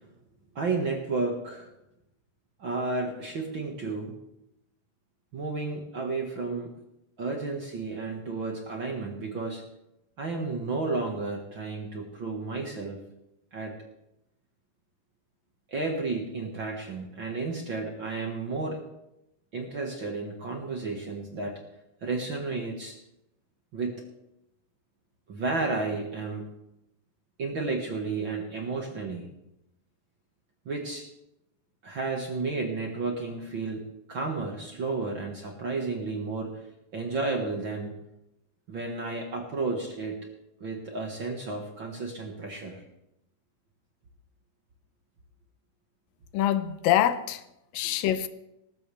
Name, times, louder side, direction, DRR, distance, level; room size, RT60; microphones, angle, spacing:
voice 1, 0.6-1.7 2.6-4.2 5.3-6.7 7.2-9.6 10.2-13.0 13.5-13.8 15.7-18.8 19.5-21.6 22.0-23.0 23.7-24.0 25.3-26.5 27.4-29.3 30.7-31.1 31.8-36.6 36.9-38.0 38.7-40.3 40.6-42.8 47.8-47.9, right 3 dB, 45° right, 1.7 m, -32 dB
voice 2, 46.3-47.4 47.7-48.3, left 11 dB, 80° left, 2.3 m, -25 dB
19.0 x 14.5 x 3.4 m
omnidirectional pair, 4.0 m